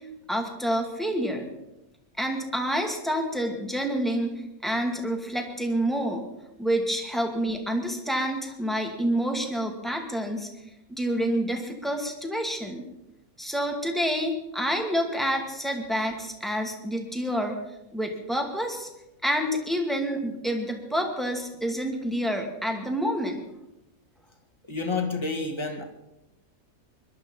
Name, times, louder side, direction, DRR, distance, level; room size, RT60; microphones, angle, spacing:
voice 1, 0.3-1.5 2.2-4.3 4.6-6.2 6.6-10.5 10.9-12.8 13.4-17.6 17.9-18.9 19.2-23.4, equal, ahead, 3 dB, 2.2 m, -28 dB
voice 2, 24.7-25.8, left 3 dB, 20° left, 2 dB, 2.0 m, -29 dB
21.5 x 12.0 x 5.6 m, 0.92 s
omnidirectional pair, 1.5 m